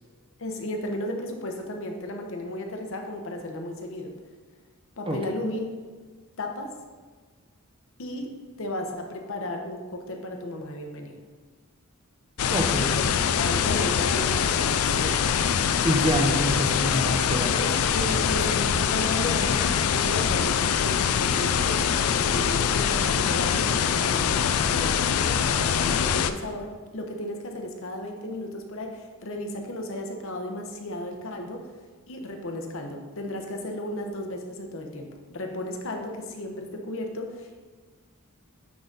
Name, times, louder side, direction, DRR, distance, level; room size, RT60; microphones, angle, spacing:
voice 1, 0.4-4.1 5.0-5.7 6.4-6.8 8.0-11.2 12.9-13.1 13.4-15.2 17.4-31.7 32.1-37.6, left 1 dB, 65° left, 3 dB, 0.9 m, -34 dB
sound 1, 12.4-26.3, left 7 dB, 85° left, 0.4 m, -24 dB
voice 2, 12.5-13.0 15.8-17.8, equal, 25° right, 3 dB, 0.7 m, -27 dB
9.4 x 3.9 x 4.0 m, 1.4 s
head